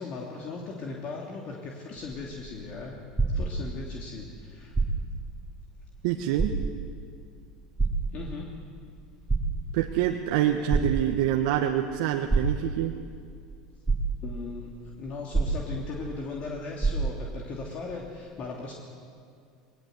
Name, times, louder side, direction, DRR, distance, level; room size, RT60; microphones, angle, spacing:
voice 1, 0.0-3.0 3.3-4.7 8.1-8.6 14.2-18.7, left 4 dB, 45° left, -1 dB, 2.8 m, -38 dB
sound 1, 2.0-4.0 4.6-5.3 5.7-5.8 6.3-7.0 7.8-8.6 9.1-10.0 10.7-11.5 12.3-13.0 13.5-13.6 13.9-14.6 15.3-16.1 16.4-16.5 16.8-17.4 18.2-18.3, right 4 dB, 10° right, 2.8 m, -28 dB
voice 2, 6.0-6.5 9.7-12.9, right 11 dB, 70° right, 4 dB, 1.2 m, -26 dB
21.0 x 19.0 x 8.1 m, 2.3 s
hypercardioid pair, 95°, 3 cm